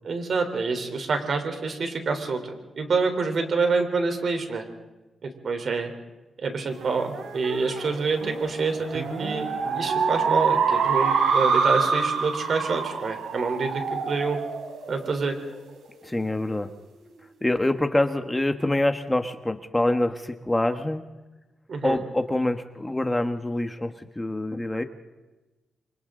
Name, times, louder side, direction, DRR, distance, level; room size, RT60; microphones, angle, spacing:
voice 1, 0.0-4.6 5.2-5.9 6.4-9.5 9.7-14.4 14.9-15.3 21.7-22.0, right 4 dB, 60° right, 5 dB, 3.7 m, -27 dB
sound 1, 6.8-15.6, right 5 dB, 85° right, 3.4 m, -26 dB
voice 2, 16.0-16.7 17.4-21.0 21.8-24.8, left 1 dB, 15° left, 8 dB, 1.3 m, -25 dB
29.5 x 24.5 x 3.9 m, 1.1 s
cardioid pair, 70°, 0 cm